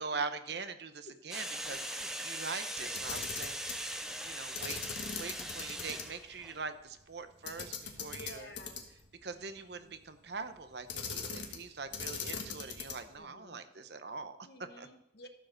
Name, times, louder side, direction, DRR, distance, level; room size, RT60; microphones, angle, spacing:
voice 1, 0.0-3.8 4.2-4.8 5.1-8.5 9.2-14.4 14.8-14.9, right 4 dB, 65° right, 10 dB, 0.8 m, -42 dB
sound 1, 1.3-6.6, equal, 5° right, 0.5 m, -40 dB
voice 2, 1.7-2.1 5.7-6.0 8.1-8.8 9.3-10.0 13.2-13.6 14.4-15.3, left 2 dB, 60° left, 6 dB, 1.1 m, -54 dB
Camera, 2.9-3.8 4.6-6.0 6.4-6.5 7.5-9.1 10.9-11.7 11.9-13.1, left 6 dB, 75° left, 1.5 m, -40 dB
13.5 x 5.0 x 6.3 m, 0.84 s
head